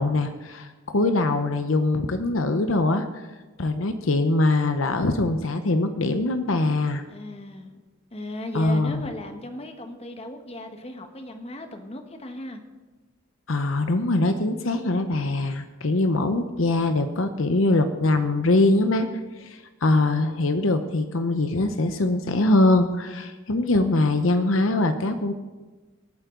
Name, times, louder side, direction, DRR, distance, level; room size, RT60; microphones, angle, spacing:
voice 1, 0.0-3.2 3.6-7.0 8.5-9.1 13.5-19.1 19.4-25.3, left 2 dB, 70° left, 8 dB, 0.9 m, -22 dB
voice 2, 7.1-7.8 8.1-12.6, left 1 dB, 30° left, 6 dB, 1.3 m, -37 dB
25.0 x 9.2 x 3.9 m, 1.2 s
head